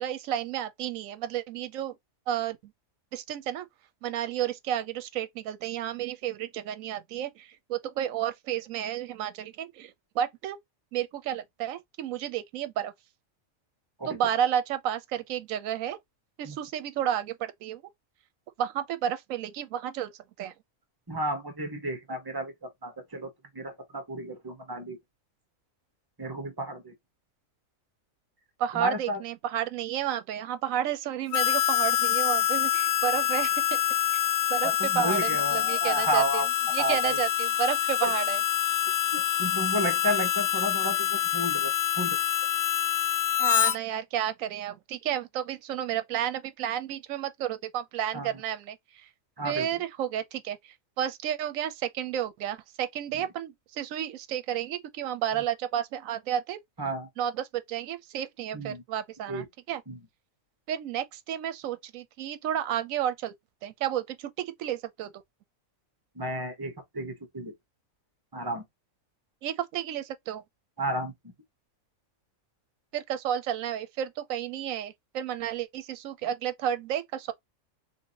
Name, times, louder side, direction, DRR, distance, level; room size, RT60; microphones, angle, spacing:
voice 1, 0.0-1.9 2.3-2.7 3.1-3.7 4.0-10.6 10.9-12.9 14.0-16.0 16.4-17.8 18.6-20.1 20.4-20.5 28.6-33.8 34.5-36.5 36.7-38.4 43.4-49.1 49.4-56.6 57.2-59.8 60.7-63.3 63.6-65.1 69.4-70.4 72.9-77.3, right 10 dB, 80° right, 1.0 m, -31 dB
voice 2, 21.1-25.0 26.2-26.9 28.7-29.2 34.6-36.4 36.8-37.2 38.0-38.1 39.1-42.2 48.1-48.3 49.4-49.8 56.8-57.1 58.5-58.8 59.3-59.4 59.9-60.0 66.2-67.5 68.3-68.6 70.8-71.1, right 1 dB, 20° right, 1.0 m, -32 dB
Harmonica, 31.3-43.8, left 11 dB, 75° left, 1.0 m, -26 dB
3.3 x 2.8 x 2.7 m
omnidirectional pair, 1.4 m